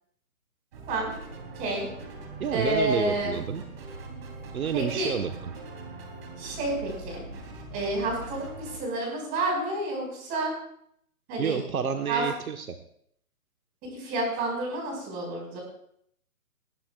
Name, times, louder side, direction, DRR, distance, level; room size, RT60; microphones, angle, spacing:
sound 1, 0.7-8.8, right 2 dB, 40° right, 3.6 m, -42 dB
voice 1, 1.6-1.9 2.5-3.4 4.7-5.1 6.4-7.2 7.7-10.5 11.3-11.6 12.1-12.2 13.9-15.6, right 2 dB, 20° right, 0 dB, 5.2 m, -29 dB
voice 2, 2.4-3.6 4.5-5.5 11.4-12.7, right 7 dB, 70° right, 6 dB, 1.4 m, -29 dB
19.5 x 15.5 x 2.4 m, 0.69 s
hypercardioid pair, 160°, 44 cm